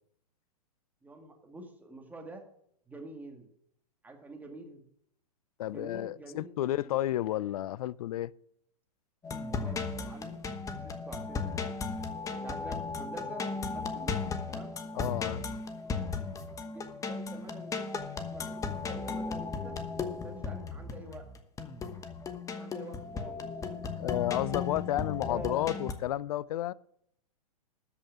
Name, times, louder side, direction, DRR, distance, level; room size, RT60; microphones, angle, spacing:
voice 1, 1.0-2.5 2.9-3.5 4.0-4.8 5.6-7.0 9.5-11.8 12.3-14.8 16.7-19.8 20.2-21.3 22.5-23.5 24.7-25.7, right 2 dB, 10° right, 2.0 m, -48 dB
voice 2, 5.6-8.3 15.0-15.5 24.0-26.7, left 13 dB, 60° left, 0.5 m, -32 dB
sound 1, 9.2-25.9, left 4 dB, 15° left, 1.1 m, -36 dB
13.0 x 5.5 x 9.0 m
hypercardioid pair, 115°, 21 cm